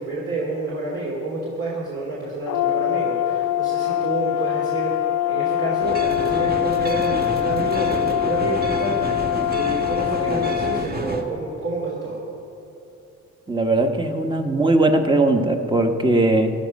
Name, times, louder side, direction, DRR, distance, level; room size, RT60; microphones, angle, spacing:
voice 1, 0.0-12.2, right 2 dB, 55° right, -4 dB, 2.9 m, -29 dB
Brass instrument, 2.5-10.9, left 12 dB, 85° left, 0.6 m, -23 dB
sound 1, 5.8-11.2, right 2 dB, 30° right, 1.5 m, -30 dB
voice 2, 13.5-16.5, right 2 dB, 15° right, 5 dB, 1.3 m, -19 dB
15.5 x 11.0 x 5.4 m, 2.8 s
cardioid pair, 90°, 30 cm